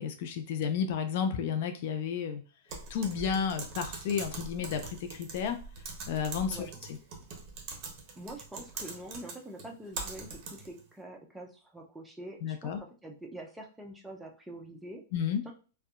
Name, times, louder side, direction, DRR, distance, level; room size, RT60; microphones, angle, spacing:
voice 1, 0.0-2.4 2.9-5.6 6.1-6.7 12.4-12.8 15.1-15.4, left 7 dB, 60° left, 7 dB, 0.4 m, -32 dB
Typing, 2.7-10.8, right 4 dB, 40° right, 0.7 m, -43 dB
voice 2, 8.2-15.0 15.4-15.5, right 1 dB, 5° right, 1 dB, 0.5 m, -45 dB
2.7 x 2.2 x 2.3 m, 0.36 s
hypercardioid pair, 135°, 0 cm